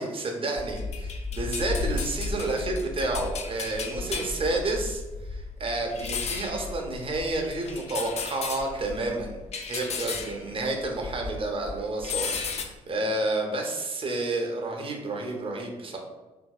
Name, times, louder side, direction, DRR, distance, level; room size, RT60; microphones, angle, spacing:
voice 1, 0.0-5.0 5.3-9.3 9.7-16.0, right 2 dB, 30° right, 1 dB, 0.7 m, -30 dB
sound 1, 0.6-11.4 11.7-12.6, left 4 dB, 40° left, 0.5 m, -34 dB
2.8 x 2.7 x 2.3 m, 1.1 s
figure-of-eight pair, 40°, 17 cm